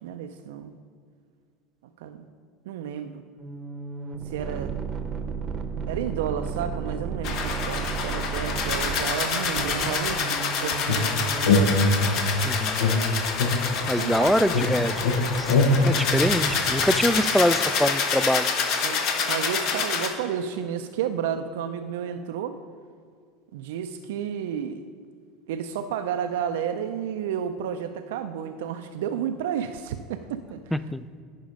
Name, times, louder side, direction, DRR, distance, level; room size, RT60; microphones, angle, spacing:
voice 1, 0.0-0.7 2.0-2.2 2.7-3.2 4.3-4.7 5.9-11.2 13.8-14.3 18.8-19.0 19.3-22.6 23.5-24.8 25.5-30.6, right 8 dB, 75° right, 8 dB, 0.4 m, -31 dB
sound 1, 3.4-12.0, right 5 dB, 35° right, 0.8 m, -33 dB
sound 2, 7.2-20.1, left 5 dB, 60° left, 1.2 m, -27 dB
sound 3, 10.9-12.3 12.8-14.2 14.5-17.1, left 2 dB, 80° left, 1.1 m, -23 dB
voice 2, 12.4-12.8 13.9-15.0 15.4-15.5 15.8-18.5 30.7-31.0, equal, 5° left, 14 dB, 0.3 m, -24 dB
10.5 x 4.5 x 5.2 m, 2.2 s
hypercardioid pair, 90°, 0 cm